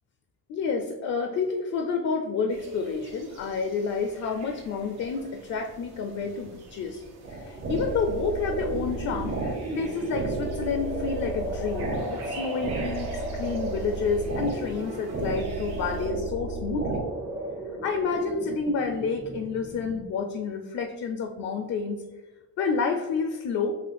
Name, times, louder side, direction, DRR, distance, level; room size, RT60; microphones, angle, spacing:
voice 1, 0.5-7.0 7.3-17.1 17.8-22.1 22.6-23.7, left 5 dB, 50° left, 5 dB, 0.4 m, -29 dB
sound 1, 2.5-16.1, right 2 dB, 85° right, 1.3 m, -47 dB
sound 2, 7.2-17.0, right 3 dB, 50° right, 1.0 m, -33 dB
sound 3, 8.5-20.0, right 1 dB, 10° right, 0.4 m, -37 dB
6.5 x 2.4 x 3.3 m, 1.2 s
cardioid pair, 150°, 37 cm